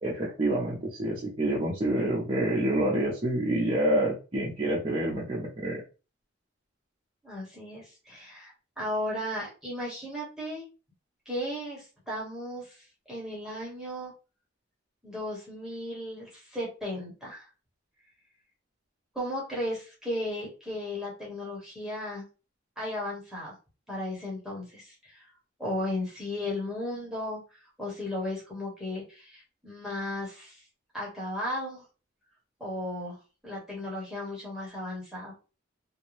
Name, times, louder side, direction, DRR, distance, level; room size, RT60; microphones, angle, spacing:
voice 1, 0.0-5.8, right 1 dB, 30° right, -5 dB, 0.6 m, -27 dB
voice 2, 7.2-10.6 11.3-14.1 15.0-17.4 19.1-22.2 22.8-23.5 23.9-25.3 25.6-30.6 30.9-31.8 32.6-35.3, left 1 dB, 5° right, -5 dB, 0.9 m, -35 dB
2.5 x 2.1 x 3.1 m, 0.33 s
head